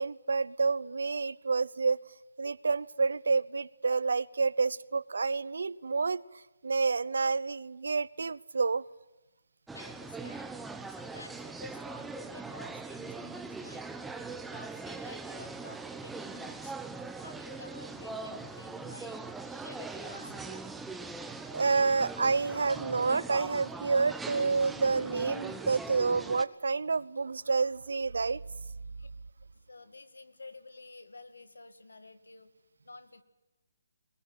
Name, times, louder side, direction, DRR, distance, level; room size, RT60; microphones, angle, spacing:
voice 1, 0.0-2.0 2.4-6.2 6.6-8.8 20.5-20.6 21.5-28.4, right 4 dB, 75° right, 20 dB, 0.7 m, -29 dB
voice 2, 9.7-10.6 10.9-13.9 14.5-16.7 17.2-19.3 19.6-20.5 29.0-29.1 29.7-32.5 32.9-33.2, left 3 dB, 90° left, 10 dB, 2.1 m, -50 dB
sound 1, 9.7-26.4, right 3 dB, 5° right, 1.0 m, -41 dB
21.5 x 20.0 x 9.3 m, 1.0 s
hypercardioid pair, 150°, 0 cm